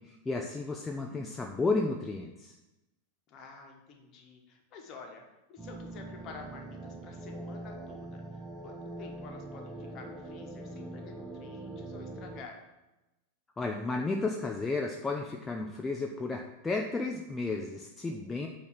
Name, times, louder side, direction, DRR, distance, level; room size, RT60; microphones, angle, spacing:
voice 1, 0.1-2.5 13.6-18.5, left 3 dB, 15° left, 2 dB, 0.5 m, -33 dB
voice 2, 0.7-1.5 3.3-12.6, left 4 dB, 35° left, 2 dB, 1.4 m, -50 dB
sound 1, 5.6-12.4, right 2 dB, 10° right, 1.0 m, -43 dB
8.3 x 2.9 x 5.9 m, 0.99 s
figure-of-eight pair, 90°, 0 cm